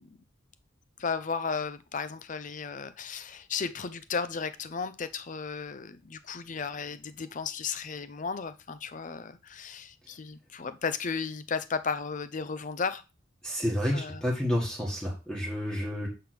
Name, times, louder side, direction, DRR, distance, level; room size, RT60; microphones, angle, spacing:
voice 1, 1.0-13.0 13.9-14.2, left 5 dB, 40° left, 0.5 m, -34 dB
voice 2, 13.4-16.1, equal, 5° left, 1.5 m, -30 dB
6.6 x 3.5 x 5.9 m
head